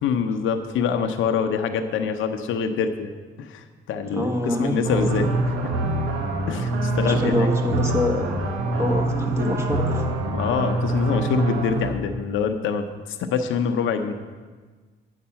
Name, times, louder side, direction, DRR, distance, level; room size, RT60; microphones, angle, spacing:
voice 1, 0.0-3.1 3.4-5.3 6.5-7.7 8.7-8.9 10.3-14.1, left 6 dB, 80° left, 7 dB, 0.8 m, -25 dB
voice 2, 4.1-5.1 7.0-8.3 8.8-10.1, left 1 dB, 15° right, 2 dB, 1.5 m, -25 dB
sound 1, 4.8-11.9, right 2 dB, 85° right, 1.1 m, -25 dB
9.6 x 6.6 x 5.7 m, 1.4 s
cardioid pair, 90°, 20 cm